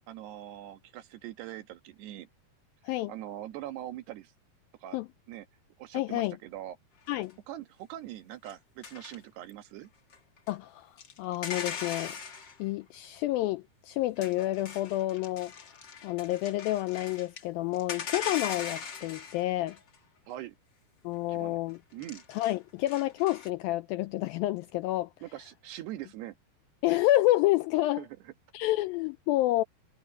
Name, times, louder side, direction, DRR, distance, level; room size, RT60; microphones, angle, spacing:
voice 1, 0.1-2.3 3.1-4.3 4.8-5.0 5.3-5.5 5.8-6.8 7.5-9.9 20.3-20.6 21.3-21.6 21.9-22.2 25.2-26.4 28.0-28.1, right 13 dB, 80° right, 3.5 m, -42 dB
voice 2, 5.9-6.4 7.1-7.3 10.5-12.2 12.6-15.5 16.0-19.8 21.0-21.8 22.3-25.1 26.8-28.0 28.5-29.6, left 16 dB, 85° left, 2.1 m, -29 dB
sound 1, 7.1-7.3 8.4-8.5 8.8-9.5 10.1-10.5 11.0-12.6 14.2-17.4 17.7-19.9 21.9-23.5, left 6 dB, 55° left, 1.2 m, -40 dB
omnidirectional pair, 4.7 m